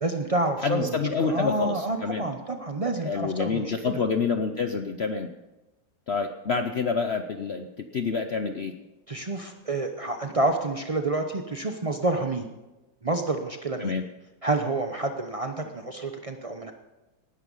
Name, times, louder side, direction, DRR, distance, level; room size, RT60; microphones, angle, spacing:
voice 1, 0.0-4.0 9.1-12.5 13.0-13.9 14.4-16.7, right 2 dB, 65° right, 5 dB, 0.3 m, -28 dB
voice 2, 0.6-2.3 3.0-5.3 6.1-8.7 13.8-14.0, left 5 dB, 80° left, 7 dB, 0.5 m, -27 dB
18.5 x 11.0 x 5.4 m, 1.1 s
omnidirectional pair, 2.1 m